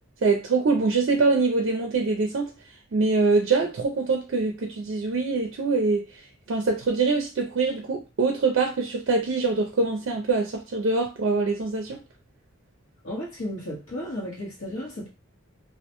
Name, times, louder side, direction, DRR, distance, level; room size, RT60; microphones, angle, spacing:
voice 1, 0.2-2.5 2.9-12.0, right 3 dB, 60° right, 0.4 m, -24 dB
voice 2, 13.0-15.1, left 1 dB, 85° left, 1.0 m, -34 dB
2.4 x 2.1 x 2.8 m
head